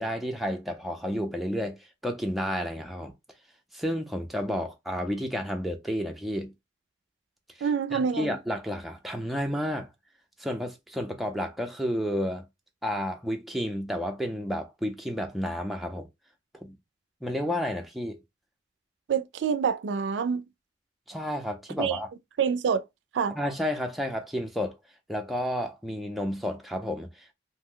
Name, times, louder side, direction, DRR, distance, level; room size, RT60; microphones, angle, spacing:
voice 1, 0.0-1.8 2.0-3.1 3.7-6.5 7.9-9.9 10.4-12.5 12.8-16.1 16.6-16.8 17.2-18.2 21.1-22.1 23.3-24.8 25.1-27.3, equal, ahead, 0.4 m, -31 dB
voice 2, 7.6-8.3 19.1-20.5 21.8-22.0 22.4-22.8 23.1-23.4, right 6 dB, 80° right, 0.3 m, -26 dB
2.6 x 2.1 x 3.7 m
head